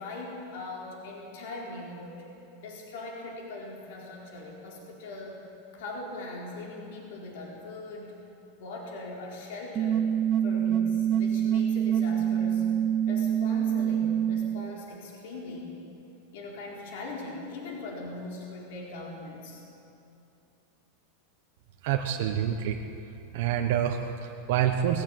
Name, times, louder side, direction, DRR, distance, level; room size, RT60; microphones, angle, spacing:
voice 1, 0.0-2.3 2.6-5.4 5.7-8.1 8.6-10.1 10.4-12.6 13.1-15.8 16.3-19.6, left 2 dB, 60° left, -2 dB, 4.4 m, -40 dB
sound 1, 9.8-14.7, right 9 dB, 25° right, 0.4 m, -26 dB
voice 2, 21.8-22.8 23.3-25.0, right 9 dB, 55° right, 4 dB, 1.1 m, -27 dB
20.0 x 15.5 x 8.5 m, 2.7 s
supercardioid pair, 170°, 0 cm